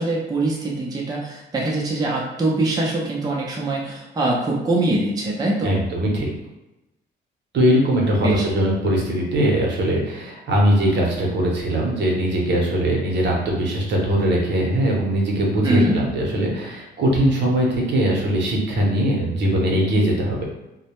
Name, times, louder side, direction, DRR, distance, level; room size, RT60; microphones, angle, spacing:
voice 1, 0.0-5.8 8.2-8.4 15.6-16.0, right 2 dB, 20° right, -3 dB, 0.5 m, -23 dB
voice 2, 5.6-6.3 7.5-20.4, right 1 dB, 60° right, -2 dB, 0.7 m, -21 dB
2.1 x 2.1 x 2.9 m, 0.96 s
cardioid pair, 90°, 20 cm